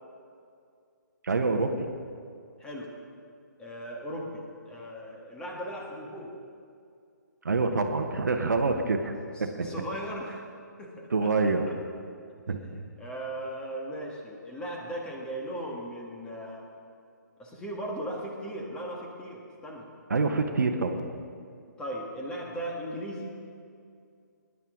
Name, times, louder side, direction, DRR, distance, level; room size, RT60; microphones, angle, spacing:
voice 1, 1.2-1.8 7.4-9.7 11.1-11.6 12.5-12.6 20.1-21.0, right 3 dB, 65° right, 6 dB, 1.2 m, -26 dB
voice 2, 3.6-6.4 9.3-10.4 10.8-11.3 12.6-16.7 17.4-19.9 21.8-23.4, right 1 dB, 10° left, -1 dB, 1.7 m, -37 dB
19.5 x 11.0 x 3.8 m, 2.3 s
figure-of-eight pair, 135°, 10 cm